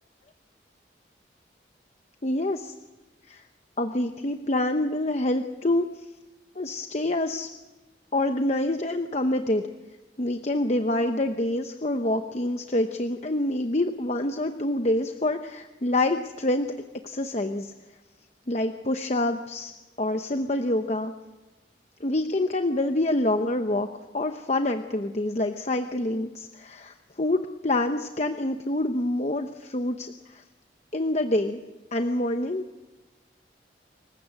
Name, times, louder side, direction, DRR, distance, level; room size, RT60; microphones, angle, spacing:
voice 1, 2.2-2.7 3.3-3.5 3.8-6.1 6.5-7.5 8.1-9.6 10.2-16.7 17.0-17.7 18.5-19.7 20.0-21.1 22.0-23.9 24.1-30.4 30.9-31.6 31.9-32.6, left 1 dB, 35° left, 6 dB, 0.9 m, -26 dB
26.5 x 15.5 x 8.2 m, 1.2 s
head